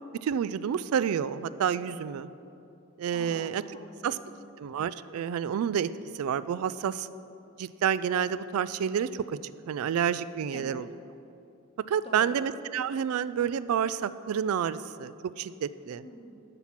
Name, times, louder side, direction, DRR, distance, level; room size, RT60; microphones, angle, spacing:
voice 1, 0.2-2.3 3.0-3.6 4.0-4.2 4.6-7.1 7.6-10.9 11.9-16.0, right 8 dB, 75° right, 16 dB, 0.3 m, -29 dB
voice 2, 3.1-4.5 10.5-10.8 12.0-12.3 16.0-16.3, equal, 25° left, 3 dB, 1.0 m, -46 dB
13.0 x 5.9 x 5.7 m, 2.7 s
head